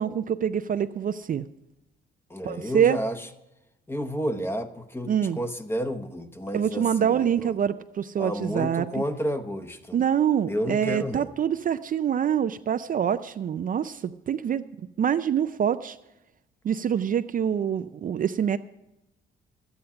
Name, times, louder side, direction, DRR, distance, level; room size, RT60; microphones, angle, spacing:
voice 1, 0.0-1.4 2.5-3.0 5.1-5.4 6.5-9.0 9.9-14.6 15.0-16.0 16.6-18.6, right 8 dB, 45° right, 10 dB, 0.4 m, -25 dB
voice 2, 2.3-3.3 3.9-7.6 8.2-10.0 10.4-11.3, equal, 10° left, 8 dB, 1.0 m, -31 dB
12.0 x 9.6 x 5.8 m, 0.93 s
cardioid pair, 90°, 20 cm